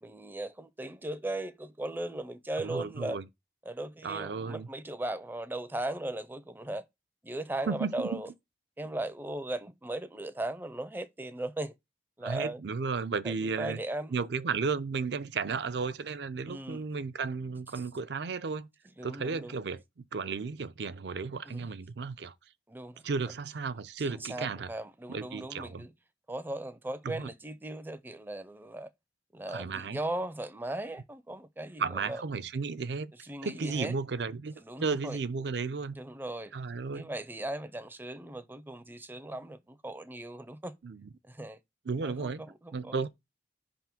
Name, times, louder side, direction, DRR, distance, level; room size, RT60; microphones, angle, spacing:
voice 1, 0.0-3.2 3.6-6.9 7.2-8.3 8.8-11.7 12.2-12.6 13.2-14.1 16.5-16.8 19.0-19.6 21.4-21.7 22.7-23.0 24.0-25.9 26.3-28.9 29.3-32.2 33.1-33.9 34.6-35.2 35.9-36.5 36.9-40.8 41.3-41.6 42.0-43.1, right 1 dB, 10° right, 0.5 m, -38 dB
voice 2, 2.6-3.2 4.0-4.7 7.7-8.2 12.2-13.8 14.1-18.7 19.0-22.3 23.0-24.7 25.1-25.9 27.0-27.2 29.5-30.0 31.8-33.1 33.4-34.5 34.8-36.0 36.5-37.1 40.8-41.1 41.9-42.4 42.7-43.1, right 4 dB, 65° right, 0.5 m, -34 dB
5.5 x 3.6 x 5.8 m
head